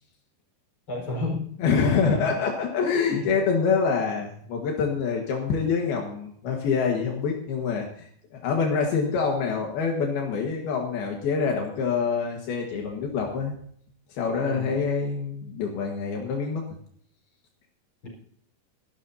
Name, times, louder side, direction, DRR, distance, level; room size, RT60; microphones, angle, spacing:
voice 1, 0.9-1.6 1.8-2.4 3.1-3.4 14.5-14.8 18.0-18.1, left 2 dB, 35° left, 0 dB, 5.3 m, -32 dB
voice 2, 1.6-13.6 14.1-16.6, left 5 dB, 75° left, 0 dB, 3.5 m, -26 dB
21.5 x 12.5 x 2.8 m, 0.63 s
omnidirectional pair, 4.5 m